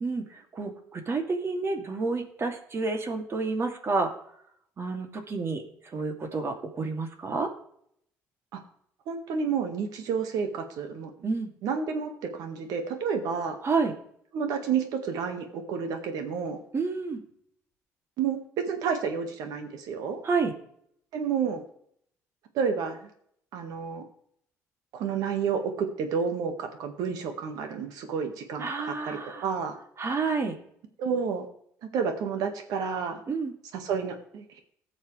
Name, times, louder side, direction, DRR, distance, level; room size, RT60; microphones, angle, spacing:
voice 1, 0.0-4.1 4.8-5.6 5.9-7.5 11.2-11.5 13.6-13.9 16.7-17.2 20.2-20.5 28.6-29.4 30.0-30.5 33.3-33.5, right 4 dB, 45° right, 4 dB, 2.7 m, -29 dB
voice 2, 9.1-11.1 11.6-13.6 14.3-16.6 18.2-20.2 21.1-21.6 22.5-23.1 23.5-24.0 24.9-29.8 31.0-31.5 31.8-33.2 33.7-34.5, right 6 dB, 80° right, 6 dB, 1.8 m, -30 dB
18.5 x 6.6 x 3.3 m, 0.68 s
supercardioid pair, 70°, 6 cm